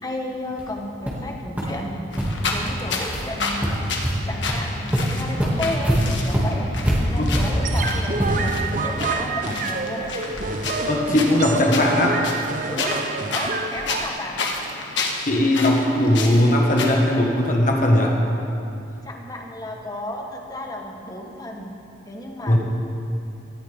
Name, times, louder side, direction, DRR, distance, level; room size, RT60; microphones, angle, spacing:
voice 1, 0.0-2.0 2.4-3.9 4.2-6.7 7.1-10.1 12.7-13.0 13.3-14.4 19.0-21.7 22.1-22.6, left 1 dB, 20° left, 1 dB, 1.2 m, -33 dB
sound 1, 0.6-0.7 1.1-1.2 1.6-1.7 2.1-2.2 2.7-2.8 3.1-3.3 3.6-4.1 4.5-4.6 4.9-8.6, equal, 10° right, 2.3 m, -23 dB
sound 2, 2.1-16.9, left 3 dB, 75° left, 1.5 m, -31 dB
sound 3, 7.4-14.1, right 4 dB, 45° right, 0.7 m, -28 dB
voice 2, 10.9-12.2 15.2-18.1 22.5-22.6, left 1 dB, 45° left, 0 dB, 1.7 m, -18 dB
18.0 x 13.0 x 3.7 m, 2.7 s
head